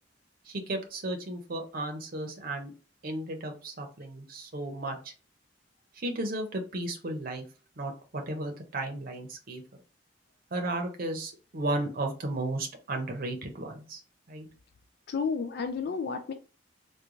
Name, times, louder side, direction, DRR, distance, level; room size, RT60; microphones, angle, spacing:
voice 1, 0.5-2.7 3.0-5.1 6.0-7.4 7.8-9.6 10.5-14.0 14.3-14.5, right 2 dB, 50° right, 0.7 m, -34 dB
voice 2, 15.1-16.3, left 5 dB, 60° left, 0.3 m, -31 dB
3.6 x 2.2 x 3.0 m
head